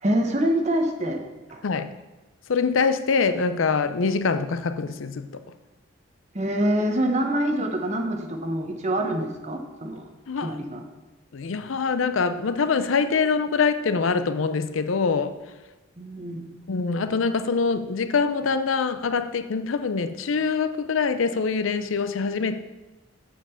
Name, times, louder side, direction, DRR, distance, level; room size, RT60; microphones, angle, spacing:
voice 1, 0.0-1.2 1.5-1.6 6.3-10.1 10.4-10.8 16.0-16.6, right 1 dB, 35° right, 1.1 m, -25 dB
voice 2, 2.5-5.4 10.3-10.6 11.3-15.4 16.7-22.6, left 5 dB, 80° left, 0.5 m, -24 dB
7.4 x 5.7 x 6.8 m
head